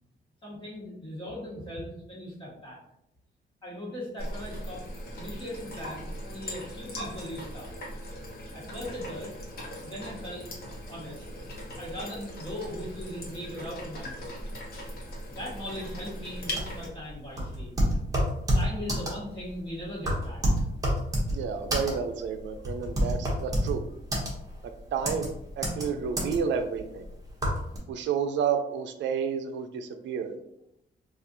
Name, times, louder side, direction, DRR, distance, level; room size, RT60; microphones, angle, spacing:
voice 1, 0.4-2.8 3.6-4.8 5.1-7.7 8.5-9.3 9.8-10.5 10.9-11.3 11.8-14.4 15.3-17.7 18.5-20.4, equal, 25° left, -6 dB, 1.4 m, -39 dB
sound 1, 4.2-16.9, equal, 55° left, 0.9 m, -39 dB
sound 2, 16.5-27.8, equal, 20° right, 0.9 m, -28 dB
voice 2, 21.3-23.8 24.9-27.0 27.9-30.4, right 6 dB, 90° right, 7 dB, 0.4 m, -30 dB
4.2 x 2.4 x 2.6 m, 0.80 s
wide cardioid pair, 170°, 19 cm